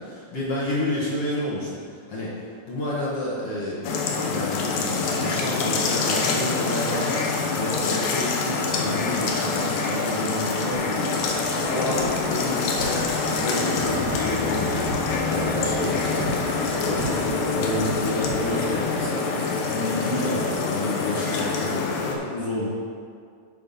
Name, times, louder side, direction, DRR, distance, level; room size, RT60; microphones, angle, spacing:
voice 1, 0.0-3.9 4.3-7.2 7.5-22.7, left 1 dB, 55° left, -7 dB, 1.7 m, -30 dB
sound 1, 3.8-22.2, left 4 dB, 70° left, 2.6 m, -26 dB
sound 2, 10.7-19.0, equal, 55° right, 4.0 m, -33 dB
12.0 x 4.4 x 5.4 m, 2.2 s
omnidirectional pair, 4.6 m